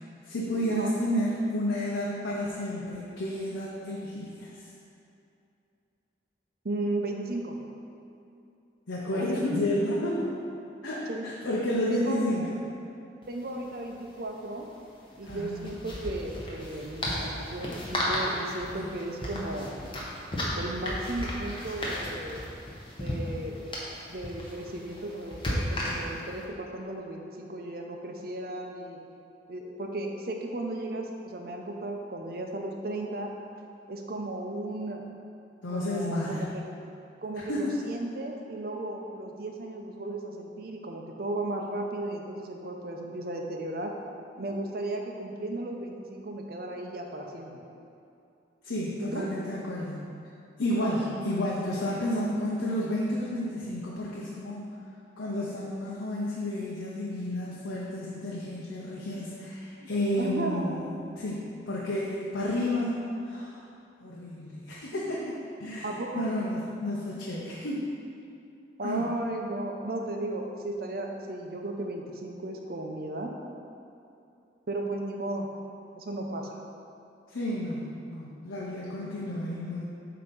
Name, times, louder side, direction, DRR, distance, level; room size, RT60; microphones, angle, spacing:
voice 1, 0.2-4.6 8.9-10.3 10.8-12.6 15.3-15.7 18.7-19.0 35.6-36.5 37.4-37.7 48.6-50.1 50.6-54.6 55.2-60.9 61.2-63.6 64.0-65.3 65.6-67.8 68.8-69.1 77.3-79.8, left 1 dB, 90° left, -5 dB, 0.8 m, -31 dB
voice 2, 6.6-7.6 9.1-9.4 11.1-11.2 11.9-12.5 13.3-14.7 15.2-19.7 20.5-22.4 22.9-23.6 24.1-29.0 29.5-33.3 33.9-35.0 35.7-36.6 37.2-43.9 44.4-47.6 49.0-49.3 59.8-59.9 60.2-60.8 65.8-66.3 68.8-73.3 74.7-75.5 76.0-76.6, right 2 dB, 55° right, 1 dB, 0.6 m, -35 dB
sound 1, 13.2-13.3 13.5-13.7 15.2-26.4, left 1 dB, 25° left, 1.0 m, -34 dB
7.7 x 2.9 x 5.2 m, 2.6 s
head